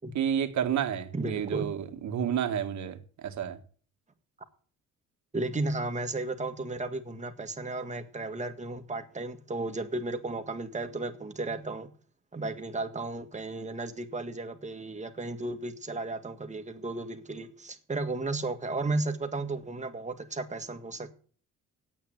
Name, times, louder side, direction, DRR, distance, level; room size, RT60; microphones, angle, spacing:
voice 1, 0.1-3.6, right 9 dB, 70° right, 1.7 m, -30 dB
voice 2, 1.1-1.7 5.3-11.9 12.3-21.1, right 2 dB, 25° right, 1.9 m, -34 dB
9.0 x 8.5 x 8.9 m
cardioid pair, 90°, 30 cm